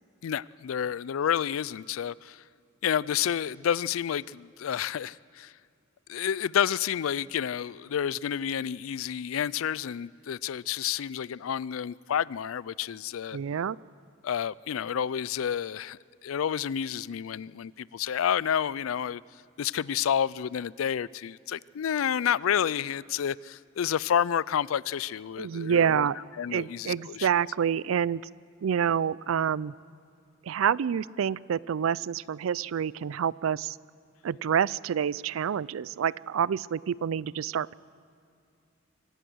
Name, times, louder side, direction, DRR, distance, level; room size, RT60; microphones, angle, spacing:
voice 1, 0.2-2.4 2.8-5.5 6.1-13.4 14.2-19.2 19.6-26.1 26.4-27.3, left 8 dB, 90° left, 0.4 m, -30 dB
voice 2, 13.3-13.8 25.4-26.2 26.5-28.2 28.6-29.7 30.5-33.8 34.2-37.7, right 8 dB, 85° right, 0.4 m, -27 dB
24.5 x 17.0 x 6.2 m
head